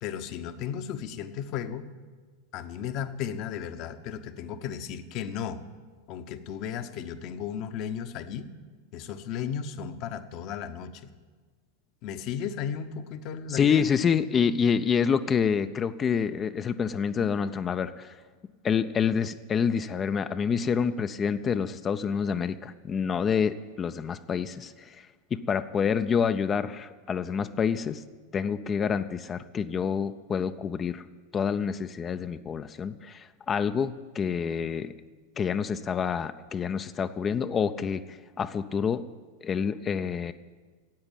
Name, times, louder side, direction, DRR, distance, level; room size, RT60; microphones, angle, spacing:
voice 1, 0.0-1.8 2.5-5.6 6.1-8.5 8.9-10.9 12.0-13.8, left 8 dB, 40° left, 10 dB, 0.9 m, -35 dB
voice 2, 13.5-18.2 18.6-28.0 28.3-31.0 31.3-34.9 35.4-39.0 39.4-40.3, left 6 dB, 25° left, 11 dB, 0.5 m, -27 dB
13.0 x 8.8 x 8.9 m, 1.4 s
figure-of-eight pair, 90°, 0 cm